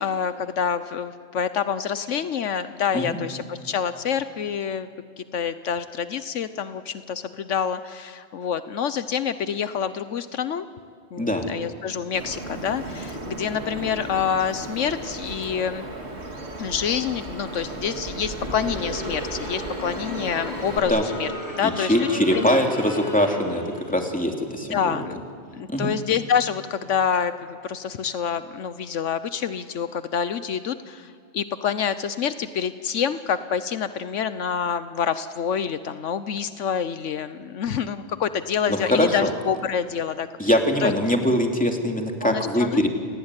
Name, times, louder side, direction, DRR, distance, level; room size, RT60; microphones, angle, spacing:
voice 1, 0.0-4.9 5.2-10.7 11.1-15.9 16.6-21.3 21.6-22.5 24.7-25.2 25.5-40.9 42.2-42.9, left 7 dB, 75° left, 12 dB, 1.1 m, -27 dB
voice 2, 11.2-11.5 20.9-21.0 21.6-25.0 25.7-25.9 38.7-39.3 40.4-42.9, equal, 5° left, 2 dB, 2.8 m, -22 dB
Bird vocalization bird call bird song, 12.1-20.8, right 2 dB, 60° right, 2.8 m, -35 dB
Crowd, 18.3-24.0, left 1 dB, 35° left, 3.3 m, -35 dB
29.5 x 17.5 x 9.8 m, 2.3 s
omnidirectional pair, 1.3 m